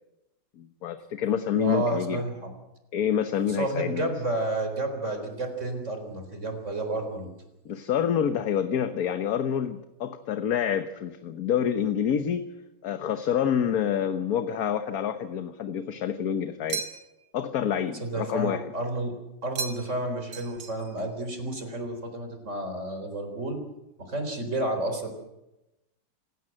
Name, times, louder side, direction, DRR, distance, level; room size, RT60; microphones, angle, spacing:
voice 1, 0.6-2.2 2.9-4.1 7.6-12.5 12.8-16.8 17.3-18.6, left 8 dB, 60° left, 9 dB, 1.4 m, -27 dB
voice 2, 1.5-2.5 3.5-7.3 18.0-19.1 19.4-23.6 24.0-25.1, right 2 dB, 40° right, 6 dB, 4.4 m, -31 dB
sound 1, 16.7-17.3 19.5-20.0 20.3-21.1, right 6 dB, 65° right, 2.1 m, -36 dB
27.0 x 16.5 x 7.7 m, 0.97 s
omnidirectional pair, 2.0 m